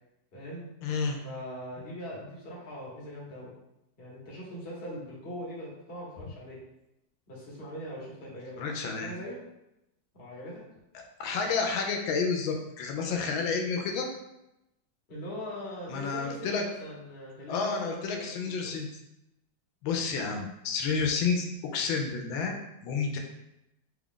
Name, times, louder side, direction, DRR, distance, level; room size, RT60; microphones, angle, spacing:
voice 1, 0.3-0.7 1.2-3.5 4.0-6.6 7.3-9.4 10.1-10.5 15.1-18.8, equal, 35° left, -5 dB, 1.1 m, -41 dB
voice 2, 0.8-1.2 8.6-9.1 11.2-14.1 15.9-16.6 17.5-18.9 19.8-21.5 21.7-22.5 22.8-23.2, left 5 dB, 85° left, 3 dB, 1.3 m, -30 dB
3.8 x 2.4 x 3.6 m, 0.88 s
omnidirectional pair, 2.1 m